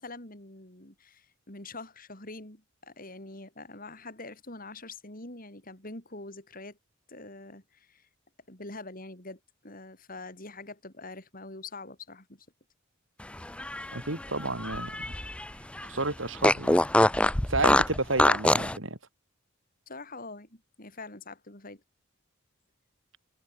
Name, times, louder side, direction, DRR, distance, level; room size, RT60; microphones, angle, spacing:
voice 1, 0.0-6.8 7.1-8.1 8.5-12.5 19.9-21.8, left 2 dB, 45° left, 6.2 m, -44 dB
Fart, 13.4-15.5 15.8-15.9 16.4-18.8, left 1 dB, 5° left, 0.4 m, -24 dB
voice 2, 13.9-15.1 15.8-16.8 17.5-19.0, right 2 dB, 70° right, 3.7 m, -31 dB
head